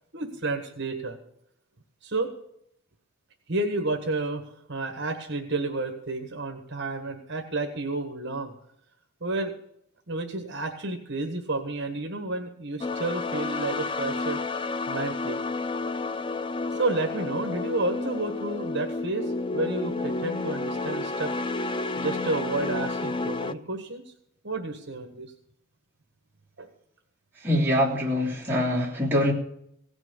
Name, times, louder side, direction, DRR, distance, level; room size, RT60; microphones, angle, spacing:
voice 1, 0.1-1.2 2.0-2.3 3.5-4.4 4.7-8.5 9.2-9.5 10.1-14.4 14.9-15.4 16.7-21.3 22.0-24.1 24.4-25.3 26.6-26.7, right 2 dB, 55° right, 4 dB, 1.5 m, -31 dB
sound 1, 12.8-23.5, left 3 dB, 20° left, 0.4 m, -31 dB
voice 2, 27.4-29.3, left 1 dB, 10° right, -6 dB, 2.9 m, -24 dB
17.0 x 6.1 x 9.0 m, 0.73 s
head